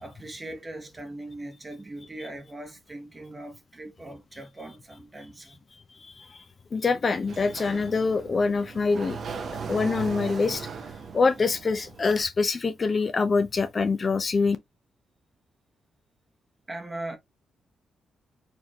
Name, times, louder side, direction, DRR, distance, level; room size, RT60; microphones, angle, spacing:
voice 1, 0.0-5.6 11.0-11.2 16.7-17.2, right 1 dB, 20° right, 1.0 m, -40 dB
voice 2, 6.0-6.4 6.7-9.2 9.7-10.7 11.1-14.6, left 4 dB, 30° left, 0.5 m, -25 dB
Sliding door, 7.2-12.2, right 5 dB, 45° right, 0.7 m, -38 dB
4.3 x 3.2 x 2.9 m
cardioid pair, 135°, 0 cm